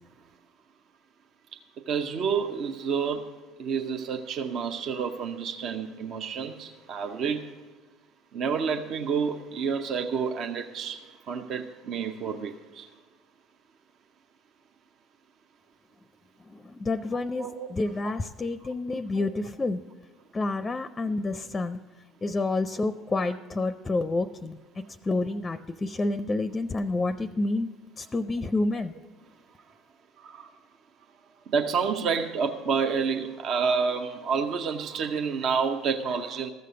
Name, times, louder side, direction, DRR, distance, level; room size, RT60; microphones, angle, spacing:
voice 1, 1.9-3.2 3.6-7.5 8.3-11.0 11.3-12.9 17.4-17.7 19.1-19.3 30.2-30.5 31.5-36.5, right 6 dB, 55° right, 5 dB, 0.7 m, -29 dB
voice 2, 16.5-19.8 20.3-21.8 22.2-28.9, left 2 dB, 25° left, 12 dB, 0.5 m, -29 dB
14.5 x 6.7 x 7.6 m, 1.3 s
hypercardioid pair, 65°, 0 cm